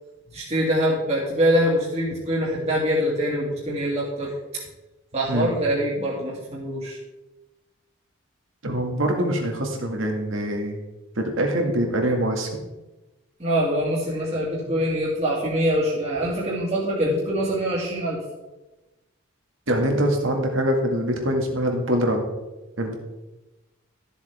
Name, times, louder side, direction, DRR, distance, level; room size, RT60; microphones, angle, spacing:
voice 1, 0.3-4.3 5.1-7.0 13.4-18.2, equal, 30° right, -5 dB, 2.0 m, -24 dB
voice 2, 8.6-10.8 11.2-12.5 14.7-14.8 17.0-17.1 19.7-22.3 22.8-22.9, equal, 70° right, 2 dB, 1.8 m, -24 dB
13.0 x 7.2 x 3.4 m, 1.1 s
head